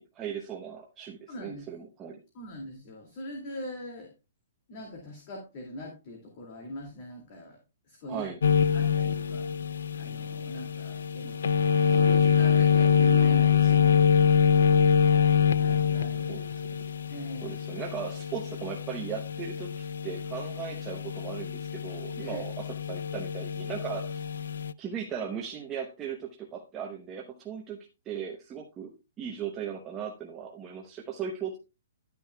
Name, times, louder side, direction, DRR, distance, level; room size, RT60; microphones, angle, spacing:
voice 1, 0.0-2.2 8.1-8.4 16.3-16.6 17.4-24.2 24.8-27.8 28.1-28.9 29.2-31.6, right 7 dB, 15° right, 0 dB, 0.8 m, -37 dB
voice 2, 1.3-1.7 2.3-4.1 4.7-7.6 7.9-8.3 8.7-11.4 11.9-14.4 15.6-16.5 17.1-17.6 22.2-22.4, left 1 dB, 30° left, 2 dB, 2.3 m, -42 dB
sound 1, 8.4-24.7, left 7 dB, 90° left, 0.4 m, -25 dB
11.5 x 9.3 x 2.3 m, 0.28 s
hypercardioid pair, 175°, 0 cm